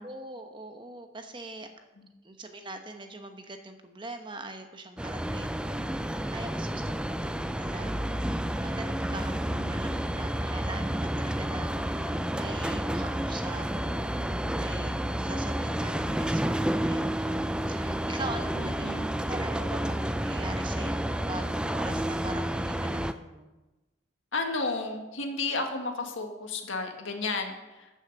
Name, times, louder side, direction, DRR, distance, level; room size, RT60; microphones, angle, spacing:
voice 1, 0.0-1.7 2.2-14.3 14.5-23.5, right 2 dB, 25° right, 6 dB, 1.0 m, -42 dB
sound 1, 5.0-23.1, right 1 dB, 5° right, 0.3 m, -30 dB
voice 2, 18.6-19.1 24.3-27.9, left 3 dB, 80° left, 4 dB, 1.8 m, -33 dB
14.0 x 6.5 x 6.8 m, 1.1 s
head